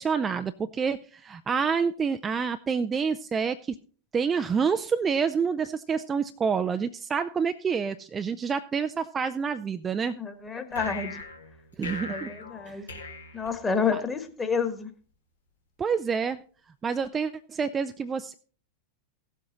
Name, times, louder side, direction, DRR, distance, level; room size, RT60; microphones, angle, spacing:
voice 1, 0.0-3.8 4.1-10.1 11.8-12.3 12.7-12.9 13.9-14.0 15.8-16.4 16.8-18.3, right 6 dB, 20° right, 9 dB, 0.5 m, -28 dB
voice 2, 10.1-11.2 12.1-12.9 13.3-14.9, left 5 dB, 15° left, 8 dB, 1.5 m, -29 dB
sound 1, 10.7-14.1, left 3 dB, 75° left, 2.1 m, -39 dB
16.0 x 7.7 x 4.0 m, 0.42 s
figure-of-eight pair, 90°, 0 cm